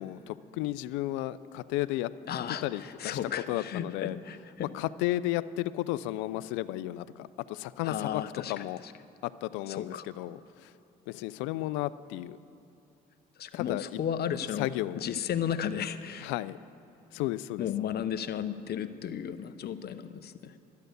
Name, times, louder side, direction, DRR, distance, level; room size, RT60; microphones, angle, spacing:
voice 1, 0.0-2.1 2.5-3.2 3.5-4.2 4.7-8.2 8.5-8.8 9.2-10.7 11.1-12.4 13.5-13.8 14.6-15.0 16.2-16.6 17.1-17.7, left 16 dB, 85° left, 16 dB, 0.4 m, -33 dB
voice 2, 2.3-4.7 7.8-8.9 9.7-10.0 13.4-14.7 14.9-16.3 17.6-20.5, left 9 dB, 55° left, 11 dB, 0.8 m, -34 dB
12.0 x 10.5 x 6.7 m, 2.8 s
supercardioid pair, 65°, 19 cm